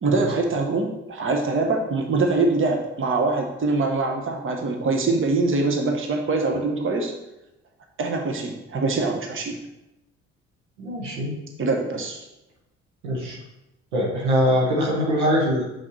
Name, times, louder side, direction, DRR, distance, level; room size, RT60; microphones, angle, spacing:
voice 1, 0.0-7.1 8.0-9.6 11.6-12.2, right 3 dB, 35° right, 3 dB, 1.1 m, -23 dB
voice 2, 10.8-11.3 13.0-13.4 13.9-15.6, equal, 85° right, -3 dB, 1.4 m, -22 dB
5.8 x 5.5 x 3.2 m, 0.94 s
hypercardioid pair, 50°, 34 cm